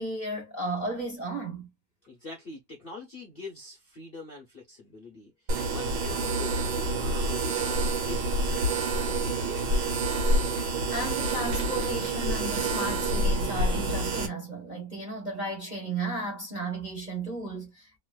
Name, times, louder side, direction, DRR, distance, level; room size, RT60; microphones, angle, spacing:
voice 1, 0.0-1.7 10.9-18.0, right 2 dB, 25° right, 1.2 m, -34 dB
voice 2, 2.0-9.9, left 3 dB, 40° left, 0.9 m, -44 dB
sound 1, 5.5-14.3, right 2 dB, 90° right, 1.8 m, -27 dB
3.2 x 3.0 x 2.3 m
omnidirectional pair, 2.0 m